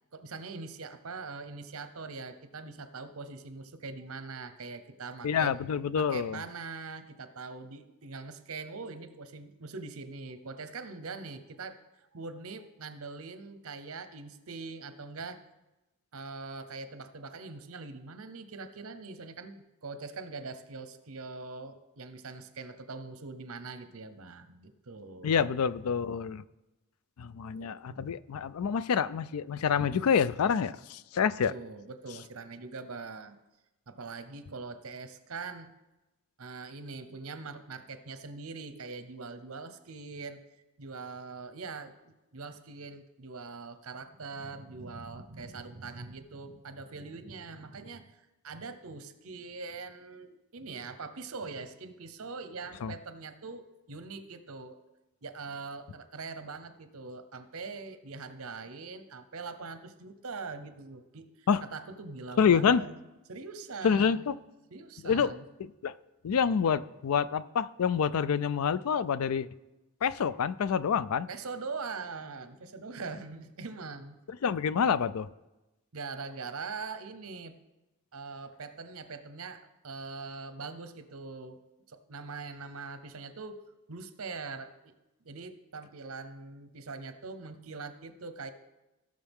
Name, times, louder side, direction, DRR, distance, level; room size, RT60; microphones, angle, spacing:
voice 1, 0.1-5.5 6.0-15.4 16.1-25.4 27.5-28.0 31.4-33.4 33.9-35.7 36.4-40.4 40.8-54.8 55.2-62.9 63.3-64.2 64.7-65.4 71.3-74.2 75.9-77.6 78.1-81.6 81.9-83.6 83.9-84.7 85.2-88.5, right 4 dB, 75° right, 0.8 m, -42 dB
voice 2, 5.2-6.4 25.2-26.4 27.2-31.5 52.8-52.9 61.5-61.6 62.4-62.8 63.8-64.3 65.0-65.3 65.6-65.9 66.2-69.5 70.0-71.3 74.4-75.3, left 7 dB, 80° left, 0.4 m, -27 dB
17.0 x 6.5 x 3.6 m
head